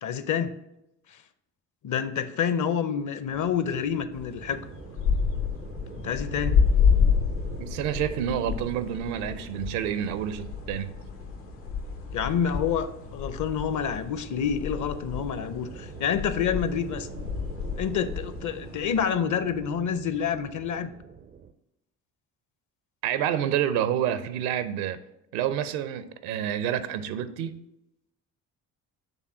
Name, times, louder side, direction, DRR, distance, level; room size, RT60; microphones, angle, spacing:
voice 1, 0.0-0.6 1.8-4.6 6.0-6.6 12.1-17.1 17.8-20.9, left 7 dB, 40° left, 0.6 m, -28 dB
sound 1, 3.3-21.5, right 6 dB, 25° right, 0.3 m, -44 dB
sound 2, 4.1-19.0, left 6 dB, 80° left, 1.0 m, -29 dB
voice 2, 7.6-11.0 23.0-25.0 25.3-27.6, right 10 dB, 65° right, 0.6 m, -28 dB
7.1 x 3.4 x 5.4 m
figure-of-eight pair, 45°, 48 cm